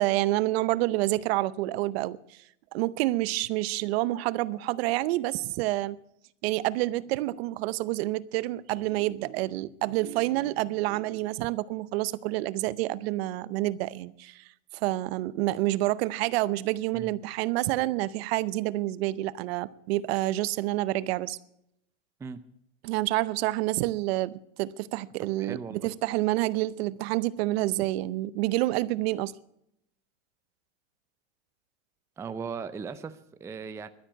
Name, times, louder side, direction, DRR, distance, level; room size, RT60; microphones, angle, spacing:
voice 1, 0.0-2.2 2.7-6.0 6.4-14.4 14.7-21.4 22.8-29.3, right 17 dB, 55° right, 0.7 m, -28 dB
voice 2, 25.2-25.9 32.2-33.9, right 5 dB, 10° right, 0.4 m, -38 dB
12.0 x 9.7 x 8.7 m
supercardioid pair, 130°, 36 cm